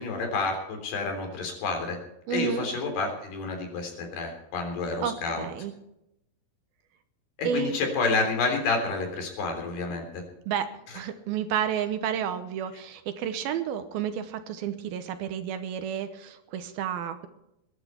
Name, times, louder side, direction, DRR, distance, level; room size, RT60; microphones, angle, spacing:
voice 1, 0.0-2.0 2.3-5.4 7.4-10.2, left 4 dB, 70° left, 3 dB, 5.5 m, -29 dB
voice 2, 2.3-2.7 5.0-5.7 7.4-7.8 10.5-17.3, right 8 dB, 75° right, 10 dB, 2.6 m, -31 dB
21.5 x 11.0 x 4.5 m, 0.84 s
omnidirectional pair, 4.7 m